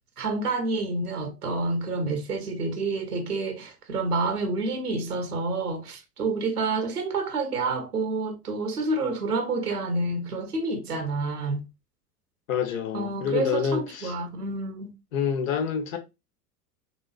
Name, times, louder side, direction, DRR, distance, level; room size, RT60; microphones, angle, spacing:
voice 1, 0.2-11.6 12.9-14.9, right 3 dB, 85° right, 1.0 m, -28 dB
voice 2, 12.5-14.1 15.1-16.0, left 7 dB, 60° left, 1.3 m, -27 dB
6.0 x 3.2 x 2.4 m
figure-of-eight pair, 80°, 45 cm